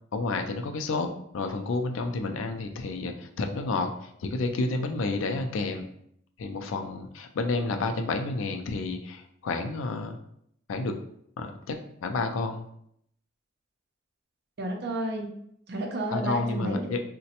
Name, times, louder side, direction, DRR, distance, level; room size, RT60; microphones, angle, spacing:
voice 1, 0.1-5.9 6.4-10.2 10.7-10.9 11.4-12.6 16.1-17.0, left 3 dB, 70° left, 5 dB, 0.4 m, -30 dB
voice 2, 14.6-15.3 15.7-17.0, right 1 dB, 55° right, 2 dB, 0.6 m, -31 dB
3.9 x 2.1 x 2.8 m, 0.71 s
head